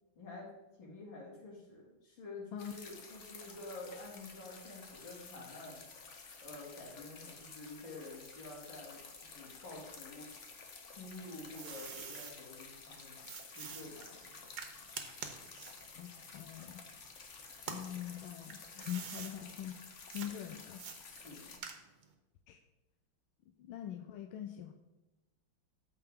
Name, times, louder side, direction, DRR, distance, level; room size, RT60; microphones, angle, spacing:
voice 1, 0.1-5.8 6.4-10.3 10.8-13.2 13.6-14.2 21.1-21.6, left 2 dB, 70° left, -4 dB, 3.3 m, -49 dB
sound 1, 2.6-21.6, left 4 dB, 45° left, 1.0 m, -52 dB
sound 2, 10.9-12.4 13.2-17.2 17.6-19.4 20.1-20.3 20.8-22.1, right 6 dB, 60° right, 1.3 m, -47 dB
voice 2, 16.0-16.8 17.7-20.8 22.5-22.6 23.6-24.7, left 11 dB, 90° left, 5 dB, 1.5 m, -43 dB
13.5 x 4.9 x 3.6 m, 1.0 s
omnidirectional pair, 2.2 m